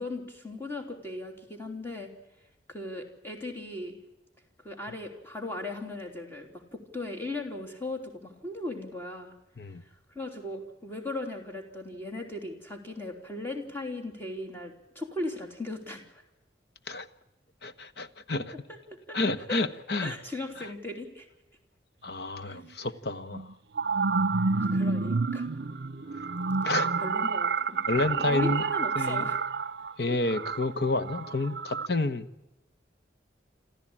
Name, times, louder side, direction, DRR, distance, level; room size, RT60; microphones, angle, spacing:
voice 1, 0.0-2.1 2.7-4.0 4.6-9.3 9.8-16.2 18.7-18.8 19.1-19.2 19.5-19.7 20.0-21.3 22.4-22.6 24.5-25.5 26.7-27.8 28.2-29.4, left 2 dB, 10° left, 2 dB, 3.3 m, -38 dB
voice 2, 17.6-18.5 19.1-20.1 20.6-20.7 22.0-23.5 26.6-26.9 27.9-28.6 28.9-29.3 30.0-32.3, left 2 dB, 65° left, 10 dB, 1.2 m, -29 dB
sound 1, 22.5-22.6 23.3-31.9, right 4 dB, 65° right, 0.7 m, -29 dB
27.0 x 14.0 x 8.8 m, 0.97 s
head